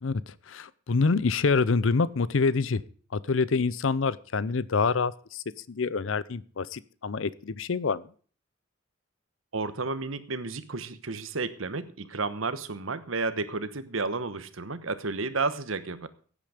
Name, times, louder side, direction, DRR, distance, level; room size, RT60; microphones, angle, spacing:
voice 1, 0.0-2.8 3.1-8.0, left 4 dB, 70° left, 19 dB, 0.6 m, -26 dB
voice 2, 9.5-16.1, right 3 dB, 85° right, 12 dB, 1.1 m, -32 dB
16.0 x 8.8 x 5.0 m, 0.43 s
head